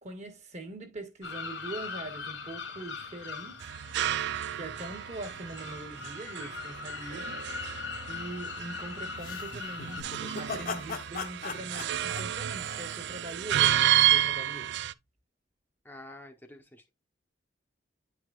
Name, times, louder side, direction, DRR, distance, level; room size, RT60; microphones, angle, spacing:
voice 1, 0.0-3.7 4.5-7.4 8.1-10.1 10.4-15.0, right 2 dB, 40° right, 1.4 m, -42 dB
sound 1, 1.2-10.0, left 5 dB, 85° left, 2.0 m, -41 dB
sound 2, 3.6-14.9, right 12 dB, 65° right, 0.3 m, -31 dB
sound 3, 9.2-13.3, left 4 dB, 50° left, 0.9 m, -39 dB
voice 2, 15.8-16.9, left 1 dB, 10° left, 0.8 m, -48 dB
9.7 x 4.8 x 2.3 m
head